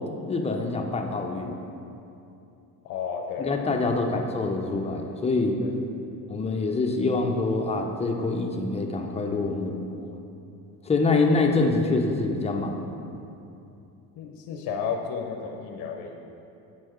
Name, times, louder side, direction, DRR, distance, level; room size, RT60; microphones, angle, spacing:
voice 1, 0.3-1.5 3.4-5.6 6.3-10.1 10.9-12.8, left 3 dB, 15° left, 2 dB, 0.5 m, -25 dB
voice 2, 2.8-3.6 3.9-4.0 5.6-5.7 14.2-16.1, left 6 dB, 55° left, 3 dB, 0.6 m, -32 dB
7.8 x 4.5 x 3.0 m, 2.7 s
supercardioid pair, 90°, 43 cm